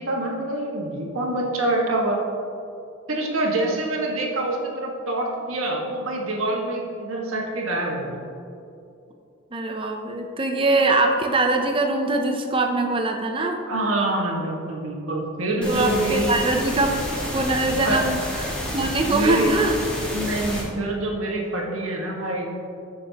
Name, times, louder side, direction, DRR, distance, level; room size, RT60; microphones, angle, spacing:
voice 1, 0.0-2.2 3.1-8.2 13.7-16.4 17.8-18.0 19.1-19.5 20.1-22.5, right 1 dB, 90° right, -2 dB, 1.7 m, -26 dB
voice 2, 9.5-13.6 15.7-17.0 17.3-19.8, right 2 dB, 25° right, 4 dB, 0.7 m, -22 dB
sound 1, 15.6-20.6, equal, 5° left, 1.6 m, -30 dB
14.5 x 6.6 x 3.0 m, 2.6 s
head